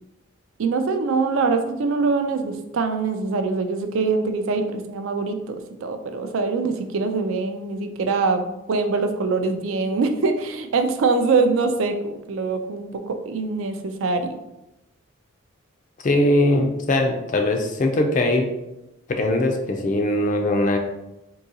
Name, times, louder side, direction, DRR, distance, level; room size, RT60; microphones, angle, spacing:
voice 1, 0.6-14.4, right 4 dB, 75° right, 6 dB, 0.4 m, -23 dB
voice 2, 16.0-18.5 19.1-20.8, left 1 dB, 35° left, 4 dB, 0.3 m, -21 dB
3.8 x 2.7 x 2.6 m, 0.91 s
head